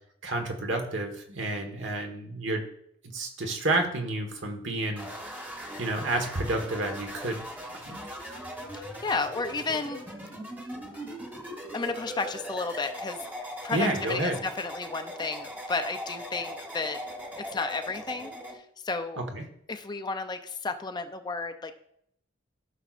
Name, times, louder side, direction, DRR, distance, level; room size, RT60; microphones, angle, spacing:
voice 1, 0.2-2.7 3.0-5.1 5.8-7.4 7.7-8.0 13.7-14.4 19.2-19.4, right 2 dB, 65° right, 4 dB, 1.4 m, -30 dB
sound 1, 5.0-18.6, equal, 10° right, 1.2 m, -40 dB
voice 2, 8.7-10.0 11.7-13.2 13.6-17.0 17.5-19.2 19.7-21.7, left 3 dB, 20° left, 7 dB, 0.5 m, -32 dB
14.5 x 6.1 x 2.5 m, 0.71 s
head